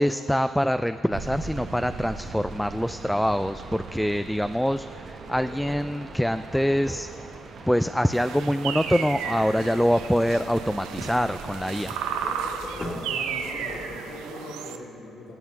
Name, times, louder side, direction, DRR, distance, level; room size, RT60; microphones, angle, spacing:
voice 1, 0.0-7.1 7.7-12.0, equal, 5° left, 10 dB, 0.3 m, -25 dB
sound 1, 1.1-12.4, right 4 dB, 60° right, 1.3 m, -40 dB
sound 2, 5.2-7.5 12.0-14.3, left 1 dB, 30° left, 1.9 m, -40 dB
sound 3, 8.1-14.8, right 7 dB, 90° right, 0.7 m, -33 dB
voice 2, 12.7-15.4, left 2 dB, 75° left, -4 dB, 3.2 m, -41 dB
15.5 x 7.9 x 5.9 m, 2.4 s
supercardioid pair, 70°, 0 cm